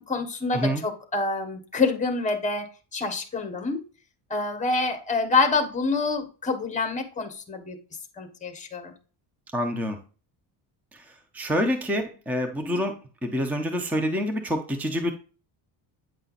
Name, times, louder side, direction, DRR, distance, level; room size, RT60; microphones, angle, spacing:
voice 1, 0.0-3.8 4.3-7.8 8.2-8.9 12.6-12.8, left 3 dB, 15° left, 6 dB, 1.2 m, -27 dB
voice 2, 9.5-10.0 10.9-11.0 11.3-15.1, equal, 5° right, 5 dB, 0.6 m, -27 dB
9.1 x 5.4 x 2.4 m, 0.36 s
cardioid pair, 170°, 48 cm